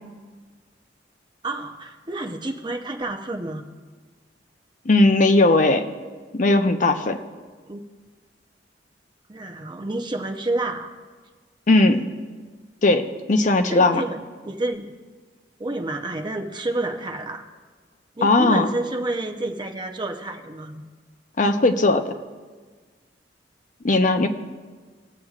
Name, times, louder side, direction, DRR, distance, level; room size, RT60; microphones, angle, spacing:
voice 1, 1.4-3.6 7.7-7.8 9.3-10.9 13.7-14.9 15.6-17.4 18.2-20.8, right 2 dB, 25° right, 4 dB, 0.7 m, -29 dB
voice 2, 4.9-5.8 6.3-7.2 11.7-12.0 12.8-14.0 18.2-18.7 21.4-22.1 23.8-24.3, left 2 dB, 45° left, 7 dB, 0.6 m, -18 dB
21.5 x 7.6 x 2.4 m, 1.5 s
head